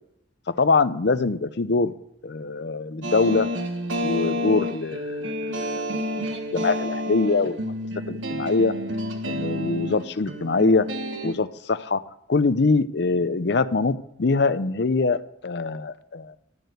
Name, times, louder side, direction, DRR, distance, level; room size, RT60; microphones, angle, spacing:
voice 1, 0.5-1.9 2.2-3.5 4.0-5.2 5.5-6.3 6.5-7.6 8.1-8.7 9.3-10.9 11.2-12.0 12.3-16.3, left 3 dB, 60° left, 14 dB, 0.6 m, -23 dB
sound 1, 3.0-11.3, equal, 80° right, 1.4 m, -29 dB
12.0 x 6.7 x 7.9 m, 0.78 s
head